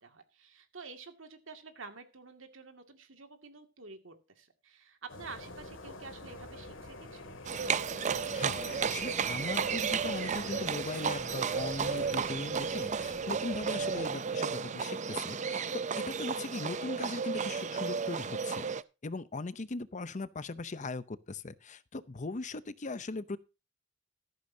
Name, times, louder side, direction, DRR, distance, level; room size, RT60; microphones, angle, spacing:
voice 1, 0.0-7.3, right 4 dB, 80° right, 2.3 m, -49 dB
sound 1, 5.1-14.1, left 2 dB, 70° left, 2.3 m, -47 dB
Livestock farm animals working animals, 7.4-18.8, right 6 dB, 40° right, 0.5 m, -33 dB
voice 2, 8.3-18.7 19.0-23.4, left 3 dB, 40° left, 0.7 m, -39 dB
14.0 x 12.0 x 2.8 m
head